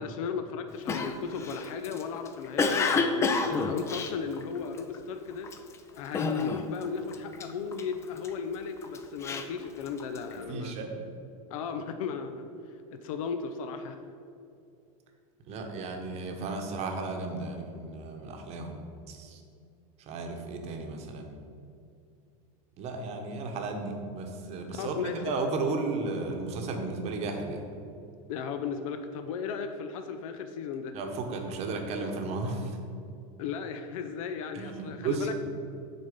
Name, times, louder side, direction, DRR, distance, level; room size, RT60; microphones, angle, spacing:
voice 1, 0.0-5.5 6.0-10.8 11.5-14.0 24.7-25.2 28.3-31.0 33.4-35.3, left 6 dB, 80° left, 8 dB, 0.5 m, -35 dB
Cough, 0.9-5.0 5.4-5.7 6.1-6.9 7.1-8.3 8.8-10.3, left 4 dB, 15° left, 0.3 m, -29 dB
voice 2, 10.5-11.0 15.5-19.4 20.1-21.4 22.8-27.6 30.9-32.8 34.5-35.3, right 3 dB, 40° right, 3 dB, 0.9 m, -34 dB
6.8 x 4.1 x 5.1 m, 2.5 s
supercardioid pair, 145°, 18 cm